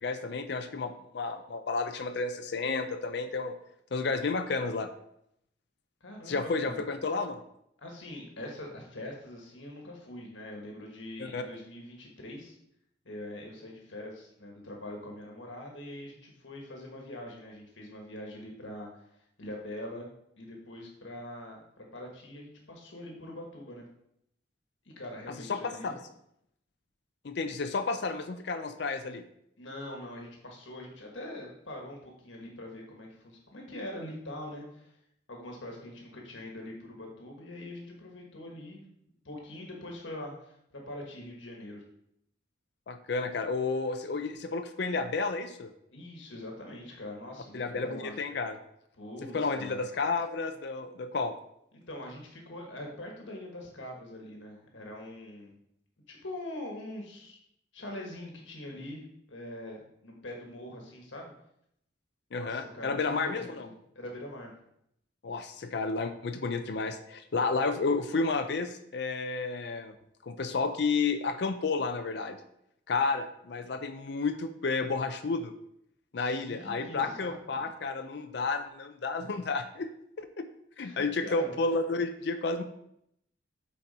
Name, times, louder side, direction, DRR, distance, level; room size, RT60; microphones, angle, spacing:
voice 1, 0.0-3.5 3.9-4.9 6.3-7.4 11.2-11.4 25.5-26.0 27.2-29.2 42.9-45.7 47.5-48.6 49.3-51.3 62.3-63.7 65.2-69.9 70.2-72.4 72.9-75.5 76.1-79.9 80.2-80.4 80.8-82.6, left 4 dB, 60° left, 7 dB, 0.5 m, -31 dB
voice 2, 6.0-6.8 7.8-12.5 13.0-19.1 19.4-20.1 20.4-23.8 24.8-26.0 29.6-34.9 35.3-38.8 39.2-41.8 45.9-48.2 48.9-49.8 51.7-55.6 56.1-57.4 57.7-61.3 62.4-64.5 76.2-77.7 80.8-81.5, left 1 dB, 75° left, 0 dB, 1.5 m, -43 dB
7.8 x 4.2 x 4.2 m, 0.75 s
head